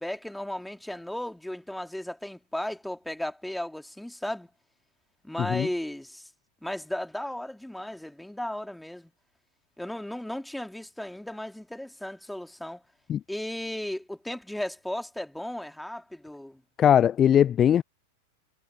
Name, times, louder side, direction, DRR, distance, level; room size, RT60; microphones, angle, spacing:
voice 1, 0.0-4.5 5.2-6.3 6.6-9.1 9.8-12.8 13.3-16.6, left 1 dB, ahead, 2.9 m, -35 dB
voice 2, 16.8-17.8, left 9 dB, 25° left, 0.6 m, -20 dB
figure-of-eight pair, 90°, 0 cm